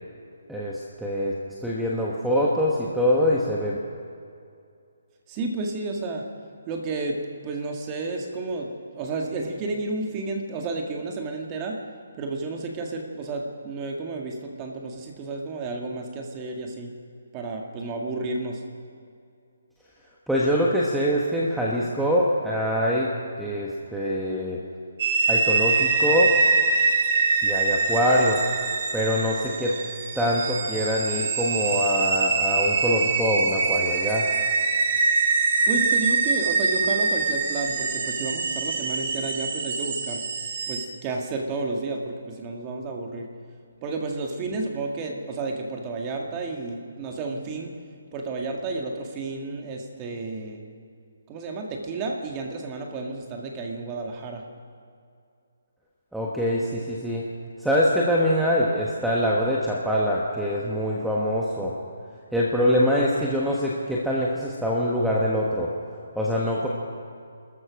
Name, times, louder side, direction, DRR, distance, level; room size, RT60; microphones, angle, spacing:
voice 1, 0.5-1.3 1.6-3.8 20.3-23.1 23.4-24.6 25.3-26.3 27.4-28.4 28.9-29.8 30.1-34.2 56.1-57.3 57.6-61.7 62.3-65.7 66.1-66.7, equal, ahead, -5 dB, 1.2 m, -24 dB
voice 2, 5.3-6.3 6.7-11.9 12.2-16.9 17.3-18.6 35.7-40.2 40.7-43.3 43.8-47.7 48.1-50.6 51.3-54.4, right 3 dB, 20° right, 2 dB, 2.0 m, -31 dB
sound 1, 25.0-40.9, right 4 dB, 40° right, 1.9 m, -24 dB
29.0 x 14.0 x 6.4 m, 2.4 s
hypercardioid pair, 170°, 0 cm